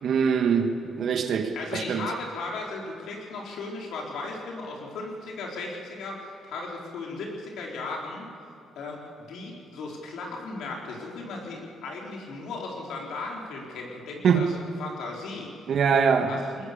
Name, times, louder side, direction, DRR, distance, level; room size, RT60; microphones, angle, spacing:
voice 1, 0.0-2.0 14.2-14.5 15.7-16.3, right 6 dB, 60° right, 1.9 m, -23 dB
voice 2, 1.5-8.3 8.8-15.5 16.3-16.6, left 3 dB, 80° left, 4.4 m, -36 dB
23.5 x 20.0 x 7.1 m
cardioid pair, 90°, 0 cm